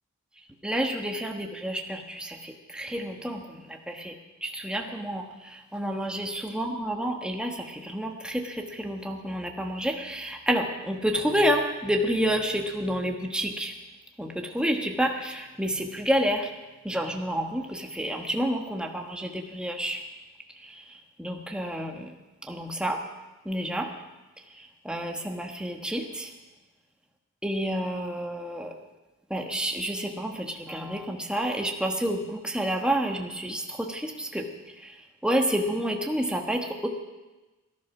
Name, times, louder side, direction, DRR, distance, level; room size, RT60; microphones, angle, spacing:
voice 1, 0.6-13.7 14.2-16.5 16.8-20.0 20.6-22.1 22.4-23.1 23.4-23.9 24.5-26.3 27.4-28.7 29.3-36.9, equal, 5° right, 2 dB, 1.2 m, -29 dB
18.0 x 11.0 x 6.0 m, 1.1 s
head